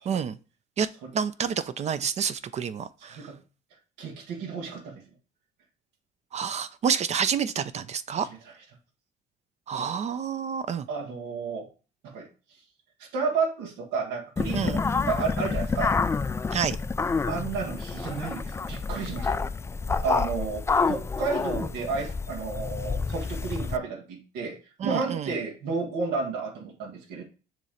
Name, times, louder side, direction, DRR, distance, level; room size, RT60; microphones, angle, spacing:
voice 1, 0.1-0.4 0.8-0.9 1.1-3.2 6.3-8.3 9.7-10.9 14.5-14.8 16.5-16.8 24.8-25.3, right 7 dB, 40° right, 14 dB, 0.5 m, -28 dB
voice 2, 4.0-5.0 8.1-8.4 9.7-10.0 10.9-11.7 12.0-12.3 13.0-16.0 17.3-19.4 20.0-27.2, right 4 dB, 90° right, 0 dB, 1.6 m, -32 dB
sound 1, 14.4-23.8, left 4 dB, 15° left, 0.3 m, -28 dB
6.7 x 3.1 x 5.0 m, 0.35 s
cardioid pair, 110°, 17 cm